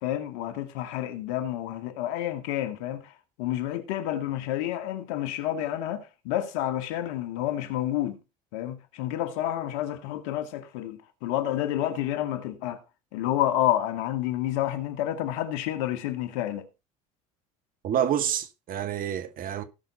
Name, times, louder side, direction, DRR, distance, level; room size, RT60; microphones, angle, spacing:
voice 1, 0.0-3.1 3.4-8.2 8.5-12.8 13.1-16.7, left 12 dB, 85° left, 2.1 m, -29 dB
voice 2, 17.8-19.6, right 10 dB, 60° right, 2.2 m, -28 dB
18.0 x 6.3 x 4.2 m
supercardioid pair, 85°, 17 cm